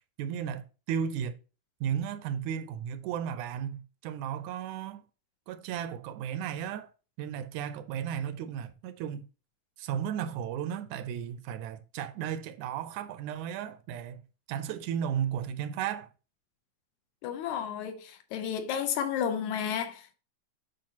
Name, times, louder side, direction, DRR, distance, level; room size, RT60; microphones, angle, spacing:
voice 1, 0.2-1.4 1.8-5.0 5.5-6.9 7.2-9.3 9.8-14.2 14.5-16.1, right 9 dB, 80° right, 1.9 m, -34 dB
voice 2, 17.2-20.2, left 8 dB, 75° left, 2.1 m, -32 dB
8.9 x 5.1 x 2.9 m
omnidirectional pair, 3.5 m